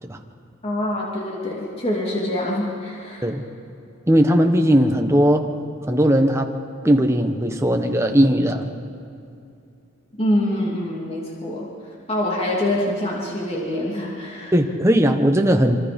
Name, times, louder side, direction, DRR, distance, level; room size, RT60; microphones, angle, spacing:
voice 1, 0.6-3.3 10.2-11.7 12.1-14.5, left 1 dB, 30° left, -4 dB, 2.9 m, -25 dB
voice 2, 4.1-5.5 5.9-6.5 6.8-8.7 14.5-15.8, equal, 15° right, 4 dB, 1.2 m, -18 dB
26.0 x 25.0 x 5.4 m, 2.6 s
head